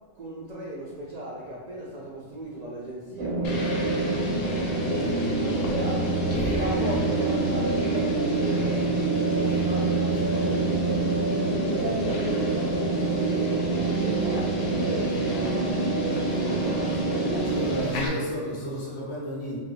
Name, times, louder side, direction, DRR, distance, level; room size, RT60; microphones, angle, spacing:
voice 1, 0.1-6.1 6.5-11.1 11.7-17.6 18.5-18.6, right 1 dB, 80° right, -5 dB, 0.3 m, -37 dB
sound 1, 3.2-17.8, right 2 dB, 60° right, 0.7 m, -26 dB
sound 2, 3.4-18.1, equal, 80° left, 1.0 m, -35 dB
voice 2, 17.3-19.6, equal, 40° left, -6 dB, 1.0 m, -32 dB
3.2 x 2.7 x 2.4 m, 1.4 s
omnidirectional pair, 1.3 m